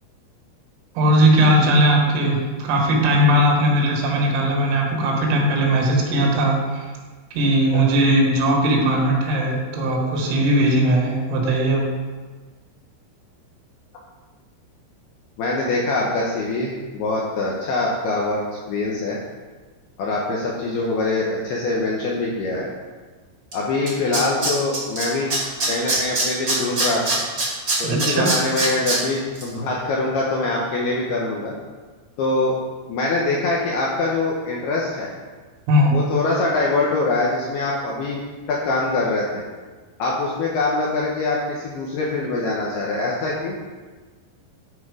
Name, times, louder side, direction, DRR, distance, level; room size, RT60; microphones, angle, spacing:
voice 1, 1.0-6.9 7.3-11.8 27.8-28.3 35.7-36.0, right 1 dB, 90° right, -1 dB, 4.3 m, -18 dB
voice 2, 15.4-19.2 20.0-22.7 23.5-25.3 25.7-27.2 27.8-31.5 32.2-32.5 32.9-35.1 35.9-38.2 38.5-39.4 40.0-43.6, left 2 dB, 80° left, -3 dB, 2.4 m, -23 dB
Tools, 23.5-23.6 23.9-25.0 25.3-29.0 29.3-29.4, right 2 dB, 45° right, 1.0 m, -22 dB
12.0 x 4.5 x 4.9 m, 1.4 s
omnidirectional pair, 5.7 m